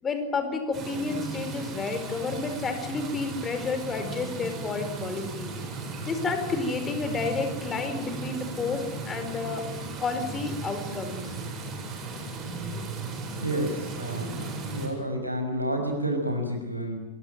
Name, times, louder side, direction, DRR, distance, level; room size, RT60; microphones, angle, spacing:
voice 1, 0.0-5.5 6.0-9.6 10.0-11.2, left 4 dB, 20° left, 8 dB, 4.6 m, -30 dB
sound 1, 0.7-14.9, right 3 dB, 30° right, 8.0 m, -36 dB
voice 2, 13.4-17.0, right 1 dB, 90° right, 5 dB, 5.7 m, -30 dB
27.0 x 22.5 x 9.2 m, 0.98 s
figure-of-eight pair, 90°, 0 cm